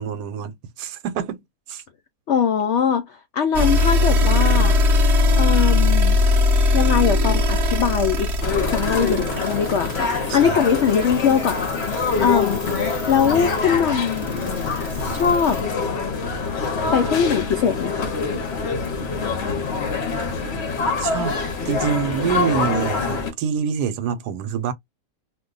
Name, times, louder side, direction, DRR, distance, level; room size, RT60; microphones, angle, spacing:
voice 1, 0.0-1.4 1.7-1.8 10.3-10.6 21.0-21.4 21.7-24.7, right 7 dB, 80° right, 1.2 m, -26 dB
voice 2, 2.3-4.8 5.4-6.2 6.7-8.3 8.6-12.6 13.0-14.3 15.1-15.6 16.9-18.2, left 7 dB, 80° left, 0.6 m, -21 dB
sound 1, 3.5-15.6, left 2 dB, 55° right, 0.9 m, -21 dB
sound 2, 8.4-23.3, left 4 dB, 50° left, 0.9 m, -25 dB
2.7 x 2.2 x 3.8 m
omnidirectional pair, 1.7 m